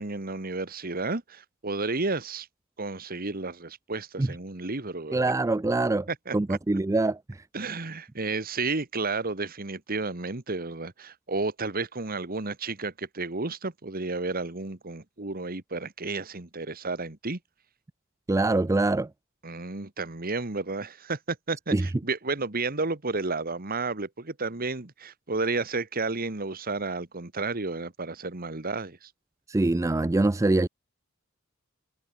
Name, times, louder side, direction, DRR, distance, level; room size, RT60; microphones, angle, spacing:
voice 1, 0.0-2.5 2.8-5.3 6.1-6.6 7.5-17.4 19.4-29.1, right 3 dB, 45° right, 1.8 m, -32 dB
voice 2, 5.1-6.1 6.3-7.4 18.3-19.1 21.7-21.9 29.5-30.7, right 2 dB, 15° right, 0.4 m, -24 dB
head